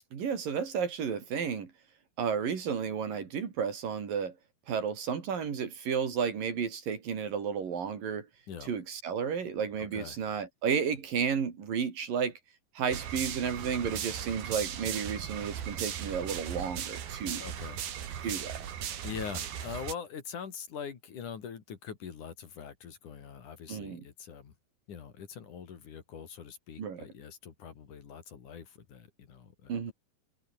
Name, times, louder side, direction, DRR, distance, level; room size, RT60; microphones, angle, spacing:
voice 1, 0.1-1.7 2.2-4.3 4.7-8.3 8.7-12.3 12.8-17.4 18.2-18.7 23.7-24.0 26.8-27.1 29.7-29.9, right 7 dB, 65° right, 5.0 m, -32 dB
sound 1, 12.9-19.9, right 9 dB, 90° right, 4.4 m, -37 dB
voice 2, 17.4-17.8 18.2-18.4 19.0-24.5 24.9-29.9, left 7 dB, 60° left, 4.0 m, -43 dB
omnidirectional pair, 4.2 m